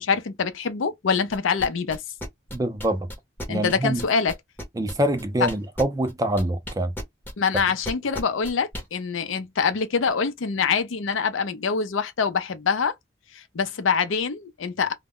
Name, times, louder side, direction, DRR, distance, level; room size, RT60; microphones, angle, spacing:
voice 1, 0.0-2.0 3.5-4.3 7.4-12.9 13.3-14.9, left 5 dB, 85° left, 0.5 m, -25 dB
sound 1, 1.3-8.9, equal, 10° left, 0.7 m, -35 dB
voice 2, 2.5-3.1 3.5-4.0 4.8-6.9, right 1 dB, 15° right, 0.3 m, -25 dB
2.2 x 2.0 x 3.6 m
head